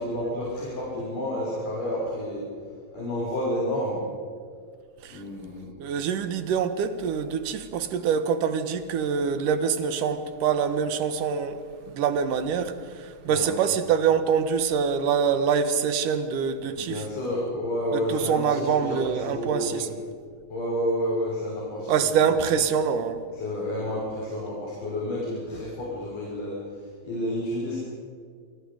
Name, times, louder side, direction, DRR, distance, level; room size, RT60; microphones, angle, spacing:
voice 1, 0.0-2.4 2.9-4.0 5.1-5.7 13.3-13.5 16.8-19.7 20.5-21.9 22.2-22.3 23.3-27.8, equal, 60° left, 7.8 m, -30 dB
voice 2, 5.0-17.1 17.9-19.9 21.9-23.2, right 7 dB, 65° right, 2.8 m, -25 dB
30.0 x 25.0 x 5.1 m
omnidirectional pair, 4.4 m